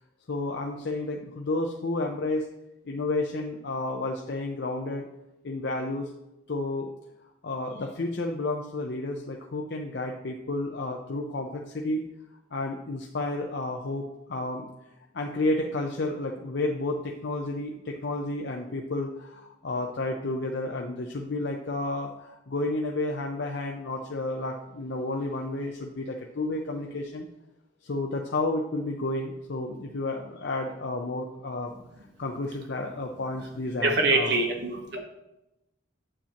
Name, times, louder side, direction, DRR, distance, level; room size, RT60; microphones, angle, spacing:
voice 1, 0.3-2.5 2.9-5.1 5.4-6.1 6.5-6.9 7.4-12.0 12.5-14.7 15.1-27.3 27.8-31.7 32.2-34.4, left 2 dB, 60° left, 1 dB, 0.6 m, -31 dB
voice 2, 33.8-35.0, right 2 dB, 55° right, 2 dB, 1.2 m, -24 dB
8.8 x 7.3 x 2.9 m, 0.92 s
head